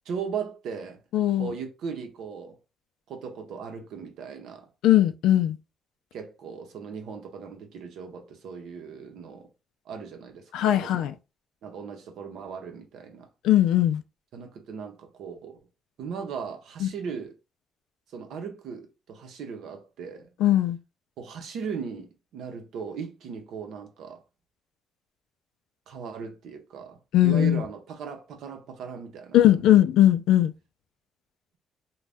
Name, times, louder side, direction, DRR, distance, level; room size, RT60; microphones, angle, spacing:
voice 1, 0.1-1.0 1.4-2.6 3.1-4.7 6.1-9.5 9.9-11.1 11.6-13.3 14.3-15.6 16.0-17.4 18.1-20.3 21.2-24.2 25.9-29.8, right 6 dB, 80° right, 0.7 m, -38 dB
voice 2, 1.1-1.5 4.8-5.6 10.5-11.1 13.4-14.0 16.8-16.9 20.4-20.8 27.1-27.6 29.3-30.5, left 12 dB, 90° left, 0.3 m, -19 dB
2.6 x 2.2 x 3.4 m
cardioid pair, 90°, 0 cm